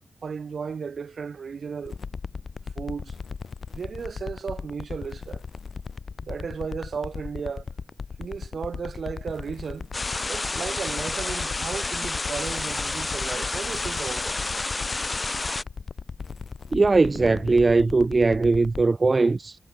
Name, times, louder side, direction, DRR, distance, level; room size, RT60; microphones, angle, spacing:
voice 1, 0.2-2.0 2.7-3.2 3.7-5.4 6.2-7.6 8.2-9.9 10.3-14.4, right 6 dB, 70° right, 3.3 m, -34 dB
sound 1, 1.8-18.8, left 5 dB, 60° left, 4.4 m, -37 dB
sound 2, 9.9-15.6, left 3 dB, 30° left, 3.2 m, -30 dB
voice 2, 16.7-19.6, right 3 dB, 35° right, 0.4 m, -20 dB
wide cardioid pair, 145°, 0 cm